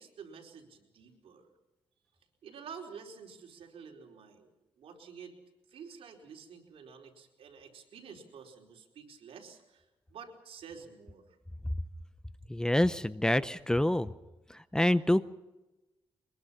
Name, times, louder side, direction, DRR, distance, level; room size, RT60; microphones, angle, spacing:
voice 1, 0.0-1.5 2.4-4.5 4.8-5.3 5.7-11.2, right 6 dB, 80° right, 1 dB, 4.7 m, -49 dB
voice 2, 12.5-14.1 14.5-15.3, left 1 dB, 5° left, 14 dB, 0.7 m, -27 dB
23.5 x 22.0 x 5.8 m, 1.0 s
cardioid pair, 105°, 10 cm